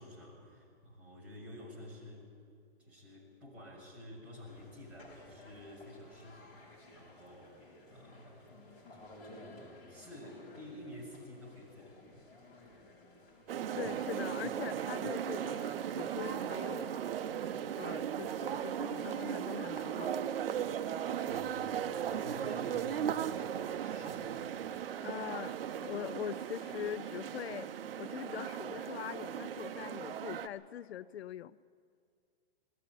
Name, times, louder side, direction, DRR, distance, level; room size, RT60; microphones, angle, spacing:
voice 1, 0.0-2.3 2.8-8.7 9.2-12.3 21.3-24.6, left 1 dB, 5° right, -7 dB, 6.9 m, -51 dB
sound 1, 4.4-21.5, left 1 dB, 25° left, 5.6 m, -58 dB
sound 2, 13.5-30.5, right 9 dB, 65° right, 1.0 m, -37 dB
voice 2, 13.8-17.0 17.8-20.3 22.1-22.2 25.0-27.7 28.0-31.6, left 10 dB, 90° left, 17 dB, 0.6 m, -42 dB
20.5 x 14.0 x 9.9 m, 2.2 s
hypercardioid pair, 155°, 31 cm